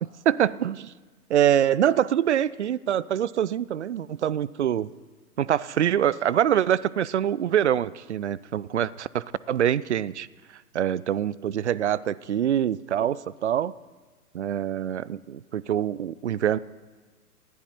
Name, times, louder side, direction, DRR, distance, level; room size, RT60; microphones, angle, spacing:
voice 1, 0.3-0.9 1.3-4.9 5.4-10.3 10.7-13.7 14.3-16.6, right 10 dB, 50° right, 21 dB, 0.5 m, -24 dB
19.0 x 14.5 x 4.5 m, 1.3 s
figure-of-eight pair, 120°, 46 cm